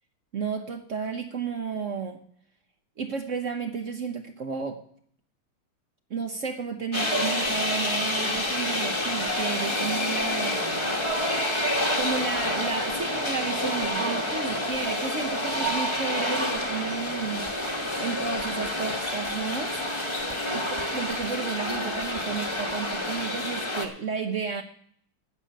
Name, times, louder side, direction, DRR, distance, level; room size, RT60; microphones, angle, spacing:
voice 1, 0.3-2.2 3.0-4.8 6.1-11.0 12.0-17.5 18.0-19.8 20.5-20.6 20.9-24.6, right 5 dB, 55° right, 6 dB, 0.9 m, -32 dB
sound 1, 6.9-23.9, left 1 dB, 20° left, 1.0 m, -28 dB
9.2 x 7.6 x 9.0 m, 0.62 s
omnidirectional pair, 2.2 m